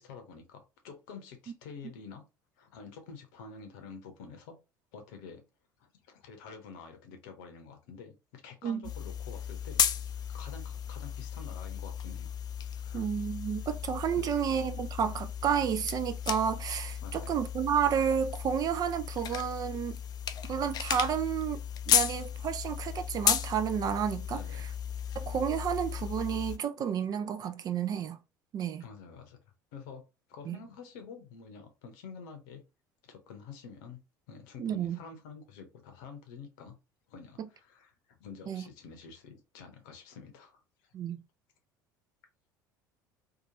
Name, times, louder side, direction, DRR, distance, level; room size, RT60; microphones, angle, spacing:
voice 1, 0.0-2.3 2.6-4.6 4.9-5.4 5.8-9.8 10.1-12.3 12.7-13.1 14.3-14.4 17.0-17.3 24.3-24.7 28.8-29.4 29.7-30.0 30.3-32.6 33.0-34.0 34.3-36.7 37.1-40.9, left 5 dB, 65° left, 0.7 m, -48 dB
sound 1, 8.8-26.6, left 9 dB, 40° left, 0.4 m, -34 dB
voice 2, 12.9-20.0 20.5-21.6 21.9-24.4 25.2-28.2 28.5-28.8 30.5-30.6 34.6-35.0 38.5-38.6 40.9-41.2, right 8 dB, 35° right, 0.4 m, -31 dB
2.8 x 2.3 x 2.7 m
figure-of-eight pair, 65°, 11 cm